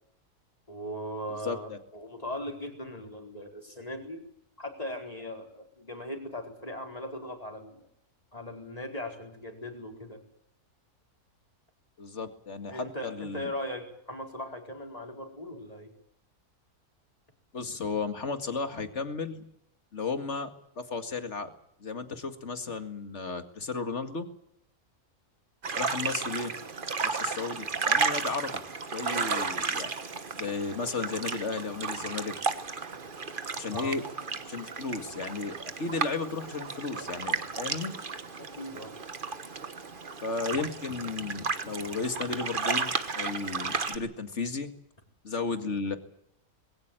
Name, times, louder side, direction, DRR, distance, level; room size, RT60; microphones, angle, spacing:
voice 1, 0.7-4.2 4.6-7.9 8.3-10.2 12.7-15.9 29.1-29.3 33.7-34.0 38.4-38.9, left 1 dB, 25° left, 3 dB, 4.6 m, -39 dB
voice 2, 1.3-1.8 12.0-13.5 17.5-19.4 19.9-20.5 20.8-21.5 21.8-24.3 25.7-26.5 27.0-28.6 28.9-29.9 30.3-32.3 33.5-34.0 34.5-37.9 40.2-44.7 45.2-46.0, left 4 dB, 50° left, 8 dB, 2.3 m, -34 dB
sound 1, 25.6-44.0, right 4 dB, 35° right, 1.4 m, -33 dB
21.5 x 17.0 x 9.0 m, 0.72 s
omnidirectional pair, 1.6 m